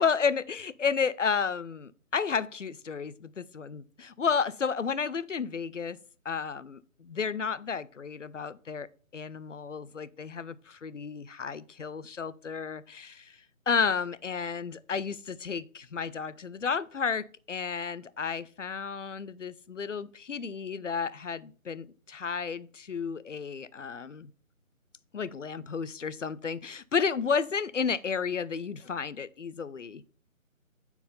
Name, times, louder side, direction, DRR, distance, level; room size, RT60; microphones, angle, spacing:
voice 1, 0.0-6.0 6.3-8.9 9.1-13.3 13.7-24.3 25.1-30.1, left 6 dB, 60° left, 0.5 m, -32 dB
7.1 x 5.5 x 3.8 m
figure-of-eight pair, 155°, 42 cm